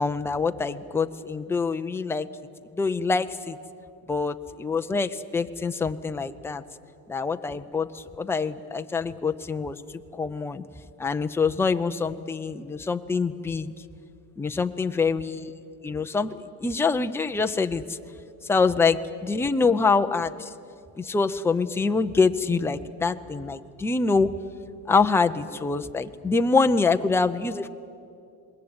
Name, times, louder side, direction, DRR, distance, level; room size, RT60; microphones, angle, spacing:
voice 1, 0.0-2.3 2.7-3.6 4.1-6.6 7.1-9.8 10.1-10.6 11.0-13.7 14.4-15.5 15.8-18.0 18.4-20.5 21.0-24.3 24.9-27.7, left 4 dB, 5° left, 7 dB, 0.6 m, -25 dB
28.0 x 20.5 x 8.8 m, 2.5 s
cardioid pair, 135°, 45 cm